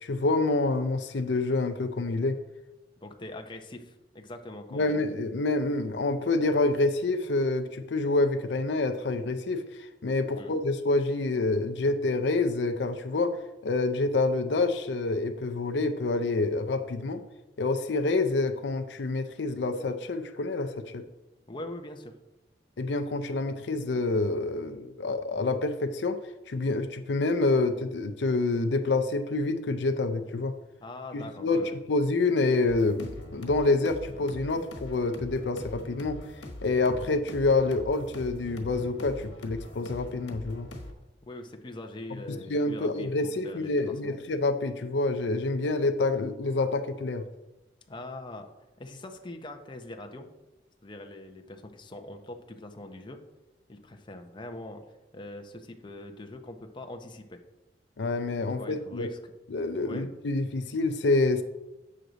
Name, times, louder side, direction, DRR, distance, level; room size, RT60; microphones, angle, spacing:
voice 1, 0.0-2.4 4.7-13.4 13.6-17.2 17.6-21.0 22.8-26.2 26.5-30.5 31.1-31.6 31.9-36.2 36.6-40.7 42.3-47.2 58.0-59.1 59.5-61.4, left 3 dB, 70° left, 8 dB, 0.5 m, -27 dB
voice 2, 3.0-5.0 10.4-10.5 21.5-22.1 30.8-31.7 41.3-44.2 47.9-48.5 48.8-50.3 50.8-53.2 53.7-54.8 55.1-57.4 58.6-59.2 59.9-60.1, left 2 dB, 25° left, 5 dB, 0.7 m, -42 dB
sound 1, 32.7-40.9, left 1 dB, 85° left, 1.3 m, -43 dB
7.8 x 6.4 x 4.0 m, 1.0 s
head